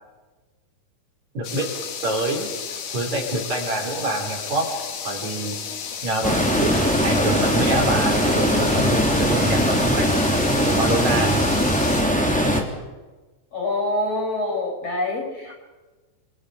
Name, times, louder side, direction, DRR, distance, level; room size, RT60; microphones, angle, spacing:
voice 1, 1.3-1.7 2.0-2.5 2.9-4.7 5.0-5.6 6.0-10.1 10.7-11.4, right 1 dB, 50° right, 1 dB, 5.5 m, -26 dB
sound 1, 1.4-12.0, left 7 dB, 60° left, 3.4 m, -33 dB
sound 2, 6.2-12.6, equal, ahead, 2.4 m, -20 dB
voice 2, 13.5-15.6, left 2 dB, 40° left, 1 dB, 6.0 m, -25 dB
29.0 x 26.0 x 5.1 m, 1.2 s
omnidirectional pair, 4.3 m